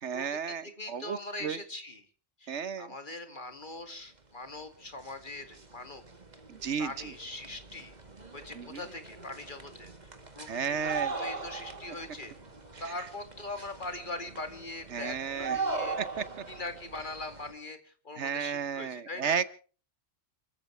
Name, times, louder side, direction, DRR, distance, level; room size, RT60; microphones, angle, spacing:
voice 1, 0.0-1.6 2.5-2.9 6.5-6.9 8.5-8.8 10.5-11.1 14.9-15.6 16.0-16.1 18.2-19.5, right 7 dB, 75° right, 15 dB, 1.3 m, -33 dB
voice 2, 0.6-2.0 2.4-6.0 6.8-7.9 8.3-12.3 12.8-16.0 16.5-19.4, left 2 dB, 45° left, 7 dB, 2.5 m, -41 dB
sound 1, 4.5-4.6 4.8-17.5, right 4 dB, 35° right, 2.1 m, -40 dB
28.5 x 15.0 x 3.3 m, 0.39 s
omnidirectional pair, 1.2 m